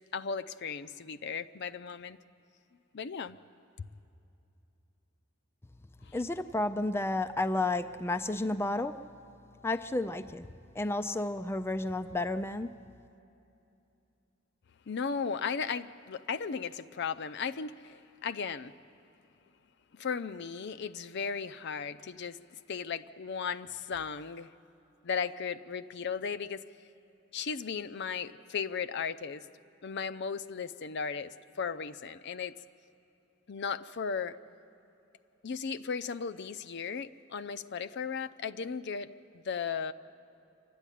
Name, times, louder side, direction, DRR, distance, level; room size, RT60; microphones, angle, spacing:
voice 1, 0.1-2.2 2.9-3.4 3.8-3.9 6.1-6.2 14.9-18.7 19.9-24.5 25.0-26.6 27.3-29.5 29.8-32.6 33.5-34.4 35.4-39.9, left 6 dB, 60° left, 11 dB, 0.5 m, -36 dB
voice 2, 6.1-9.0 9.6-10.5 10.8-12.7, left 2 dB, 10° left, 9 dB, 0.4 m, -31 dB
25.0 x 13.0 x 10.0 m, 2.8 s
head